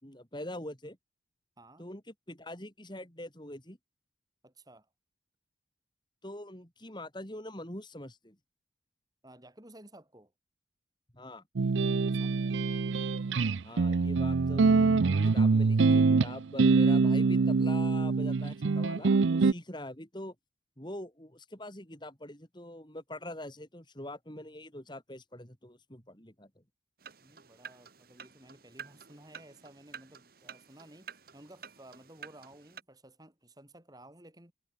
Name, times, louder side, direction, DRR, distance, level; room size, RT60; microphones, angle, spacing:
voice 1, 0.0-1.0 1.8-2.0 2.3-3.8 6.2-8.4 11.1-11.4 13.6-14.9 15.2-20.3 20.8-26.6, left 1 dB, 25° left, 4.5 m, -44 dB
voice 2, 4.4-4.9 9.2-10.3 12.1-12.4 27.2-34.5, right 1 dB, 20° right, 3.7 m, -55 dB
sound 1, 11.6-19.5, right 4 dB, 80° right, 0.6 m, -25 dB
sound 2, 27.0-32.8, right 7 dB, 50° right, 1.7 m, -50 dB
head